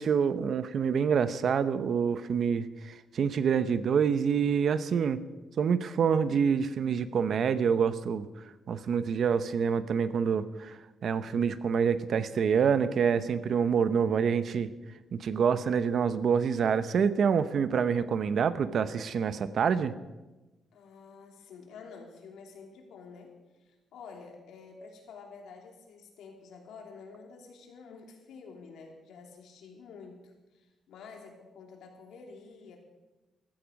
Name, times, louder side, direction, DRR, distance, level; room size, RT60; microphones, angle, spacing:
voice 1, 0.0-5.2 5.6-8.3 8.7-14.7 15.1-19.9, right 6 dB, 55° right, 13 dB, 0.8 m, -27 dB
voice 2, 20.7-23.3 23.6-32.8, left 5 dB, 85° left, 2 dB, 3.1 m, -49 dB
15.5 x 14.0 x 5.2 m, 1.1 s
cardioid pair, 130°, 0 cm